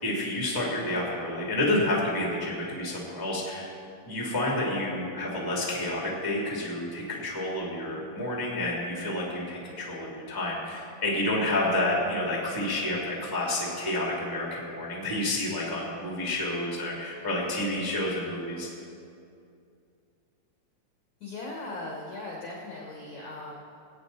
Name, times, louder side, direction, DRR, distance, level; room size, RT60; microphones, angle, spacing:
voice 1, 0.0-3.7 4.0-18.7, left 1 dB, 10° left, -4 dB, 1.5 m, -29 dB
voice 2, 21.2-23.5, left 2 dB, 80° left, -2 dB, 1.6 m, -38 dB
20.0 x 8.6 x 4.1 m, 2.5 s
omnidirectional pair, 5.3 m